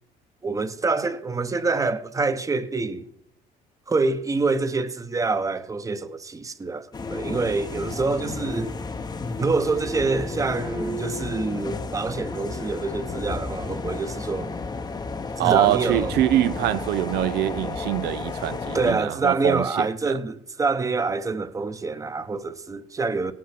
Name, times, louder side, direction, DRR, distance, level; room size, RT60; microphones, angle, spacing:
voice 1, 0.4-3.1 3.9-8.7 9.4-14.5 15.4-16.1 18.7-23.3, right 3 dB, 20° right, 0.8 m, -26 dB
sound 1, 6.9-18.9, left 4 dB, 25° left, 0.8 m, -32 dB
voice 2, 15.4-20.2, right 13 dB, 75° right, 0.5 m, -24 dB
17.5 x 6.0 x 5.9 m
cardioid pair, 110°, 17 cm